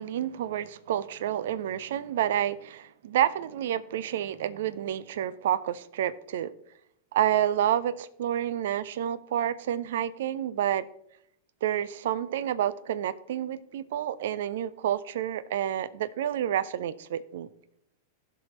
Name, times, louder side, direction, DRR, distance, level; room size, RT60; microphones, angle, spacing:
voice 1, 0.0-6.5 7.1-10.8 11.6-17.5, right 11 dB, 55° right, 0.4 m, -29 dB
15.0 x 5.6 x 3.1 m
figure-of-eight pair, 90°, 0 cm